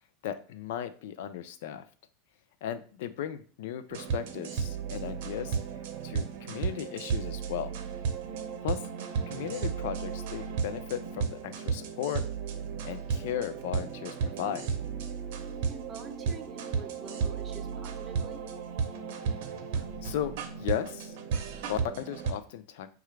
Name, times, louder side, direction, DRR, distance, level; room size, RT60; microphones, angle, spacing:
voice 1, 0.2-1.8 2.6-5.6 6.0-7.8 8.6-8.8 9.3-12.2 12.8-14.7 20.0-21.1 21.7-22.9, left 10 dB, 75° left, 11 dB, 0.4 m, -36 dB
sound 1, 3.9-22.3, right 6 dB, 70° right, 0.7 m, -34 dB
voice 2, 15.7-18.4, right 6 dB, 25° right, 6 dB, 0.6 m, -46 dB
5.6 x 2.4 x 3.1 m, 0.41 s
supercardioid pair, 140°, 0 cm